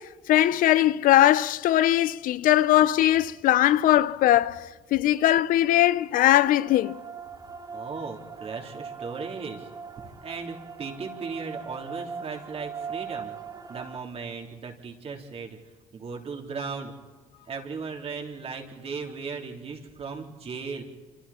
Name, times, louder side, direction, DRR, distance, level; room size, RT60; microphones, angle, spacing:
voice 1, 0.0-7.0, left 13 dB, 70° left, 0.6 m, -20 dB
sound 1, 5.4-14.0, right 6 dB, 25° right, 1.4 m, -40 dB
voice 2, 7.7-9.7 10.0-13.4 13.7-15.6 15.9-16.9 17.5-20.8, right 5 dB, 45° right, 3.7 m, -37 dB
27.5 x 26.5 x 4.4 m
cardioid pair, 105°, 14 cm